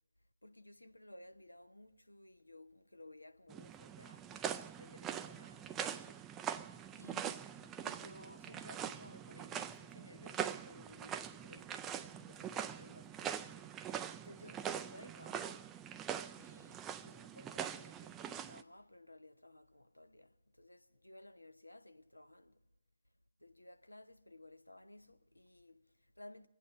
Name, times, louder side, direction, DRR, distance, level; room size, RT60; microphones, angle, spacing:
voice 1, 0.4-6.2 6.9-13.8 14.2-15.7 16.4-22.6 23.4-26.5, left 1 dB, 85° left, 0.8 m, -57 dB
sound 1, 3.5-18.6, right 9 dB, 15° right, 0.4 m, -43 dB
23.5 x 8.6 x 5.5 m
figure-of-eight pair, 140°, 0 cm